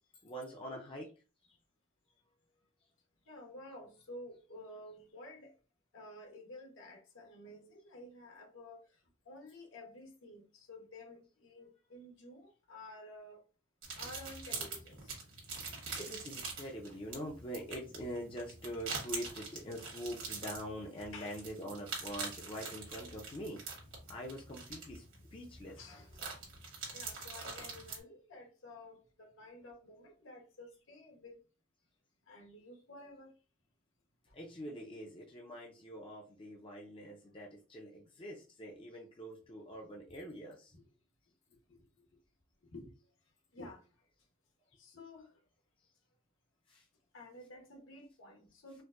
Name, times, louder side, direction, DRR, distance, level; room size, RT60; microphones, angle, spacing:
voice 1, 0.2-1.1 16.0-23.6 24.1-25.0 25.3-25.8 34.3-40.7 46.7-46.8, equal, 25° left, 0.5 m, -44 dB
voice 2, 3.3-5.5 5.9-9.0 9.3-13.4 14.0-15.1 21.1-21.4 25.8-26.2 26.9-31.4 32.3-33.3 40.7-40.9 41.5-42.1 42.6-42.9 43.5-43.8 44.7-45.3 47.1-48.8, left 1 dB, 65° left, 1.0 m, -52 dB
sound 1, 13.8-28.0, right 4 dB, 65° right, 1.4 m, -45 dB
4.4 x 2.0 x 2.5 m
head